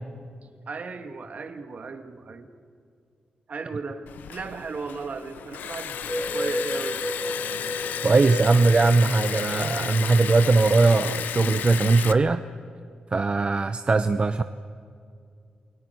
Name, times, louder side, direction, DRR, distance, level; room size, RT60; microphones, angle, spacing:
voice 1, 0.7-2.5 3.5-7.2, right 4 dB, 55° right, 8 dB, 1.9 m, -36 dB
Liquid, 4.1-12.1, left 9 dB, 90° left, 0.7 m, -33 dB
sound 1, 5.9-10.5, equal, ahead, 0.8 m, -33 dB
voice 2, 8.0-12.4 13.1-14.4, right 3 dB, 40° right, 10 dB, 0.8 m, -20 dB
29.0 x 18.0 x 8.0 m, 2.3 s
cardioid pair, 65°, 3 cm